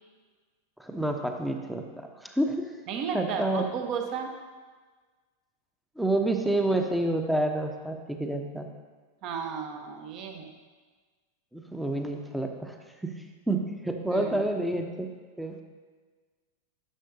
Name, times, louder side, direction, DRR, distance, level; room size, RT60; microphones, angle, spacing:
voice 1, 0.8-2.7 3.1-3.7 6.0-8.7 11.5-12.8 13.0-15.1 15.4-15.6, right 1 dB, 5° right, 4 dB, 0.8 m, -29 dB
voice 2, 2.9-4.3 9.2-10.5 14.1-14.5, right 6 dB, 40° right, 4 dB, 0.9 m, -34 dB
11.0 x 6.5 x 2.7 m, 1.4 s
figure-of-eight pair, 90°, 0 cm